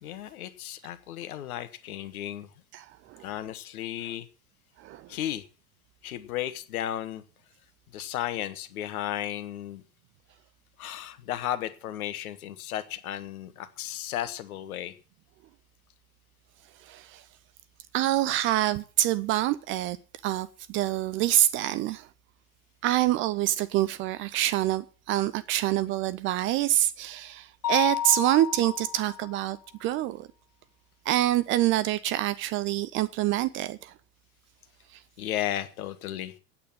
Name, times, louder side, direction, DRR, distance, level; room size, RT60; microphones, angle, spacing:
voice 1, 0.0-2.5 3.2-4.3 5.1-5.4 6.0-7.2 7.9-9.8 10.8-14.9 35.2-36.3, left 12 dB, 60° left, 1.5 m, -34 dB
voice 2, 2.7-3.2 4.8-5.1 16.8-17.2 17.9-20.0 20.2-22.1 22.8-30.3 31.1-33.9, right 14 dB, 25° right, 0.5 m, -26 dB
Mallet percussion, 27.6-29.4, left 10 dB, 75° left, 0.7 m, -32 dB
8.8 x 8.6 x 8.8 m
figure-of-eight pair, 85°, 49 cm